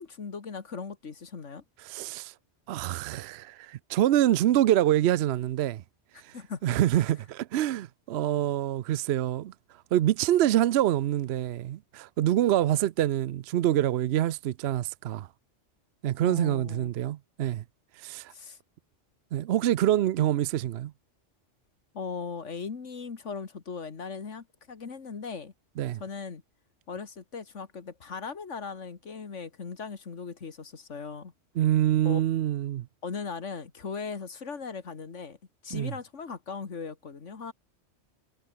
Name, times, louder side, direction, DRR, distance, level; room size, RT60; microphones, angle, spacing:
voice 1, 0.0-1.6 6.3-6.8 16.2-16.9 18.3-18.6 21.9-25.5 25.9-26.4 26.9-31.3 32.0-32.2 33.0-35.4 35.6-37.5, left 5 dB, 90° left, 2.1 m, -38 dB
voice 2, 1.8-2.3 2.7-5.8 6.2-6.4 6.6-9.5 9.9-15.3 16.0-17.6 18.0-18.3 19.3-20.9 25.8-26.0 31.6-32.9 35.7-35.9, right 12 dB, 70° right, 0.8 m, -26 dB
omnidirectional pair, 1.2 m